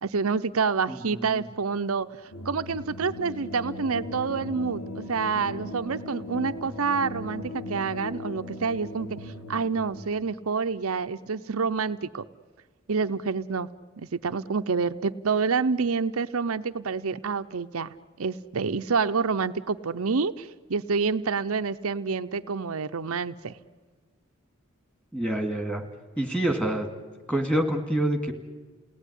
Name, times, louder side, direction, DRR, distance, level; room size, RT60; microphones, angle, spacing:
voice 1, 0.0-2.1 2.4-12.2 12.9-13.7 14.1-23.6, right 5 dB, 75° right, 9 dB, 0.7 m, -28 dB
voice 2, 0.9-1.4 25.1-25.8 26.2-26.9 27.3-28.3, right 1 dB, 5° left, 6 dB, 2.5 m, -27 dB
sound 1, 2.3-10.0, left 1 dB, 80° left, 2.9 m, -38 dB
30.0 x 18.5 x 10.0 m, 1.5 s
head